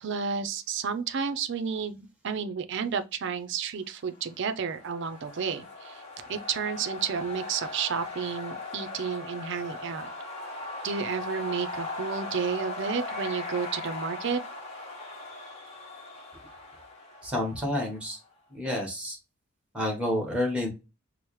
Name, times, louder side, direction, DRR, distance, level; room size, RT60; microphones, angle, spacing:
voice 1, 0.0-6.0 6.3-10.1 10.8-14.4, right 6 dB, 55° right, 0.4 m, -31 dB
sound 1, 4.3-18.1, left 2 dB, 30° left, 1.0 m, -39 dB
voice 2, 17.2-18.2 18.5-19.2 19.7-20.7, left 1 dB, 5° right, 1.2 m, -29 dB
4.6 x 2.0 x 3.0 m
head